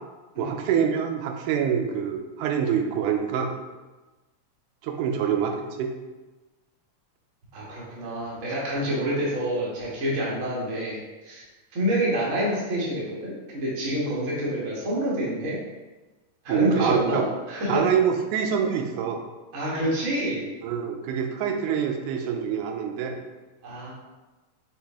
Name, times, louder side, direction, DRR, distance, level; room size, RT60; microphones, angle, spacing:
voice 1, 0.4-3.5 4.8-5.9 16.5-17.3 17.7-19.2 20.6-23.2, right 7 dB, 85° right, 3 dB, 2.0 m, -25 dB
voice 2, 7.5-11.4 11.7-15.6 16.4-17.8 19.5-20.4 23.6-23.9, equal, 65° right, -6 dB, 0.7 m, -27 dB
5.8 x 2.7 x 3.5 m, 1.2 s
omnidirectional pair, 3.5 m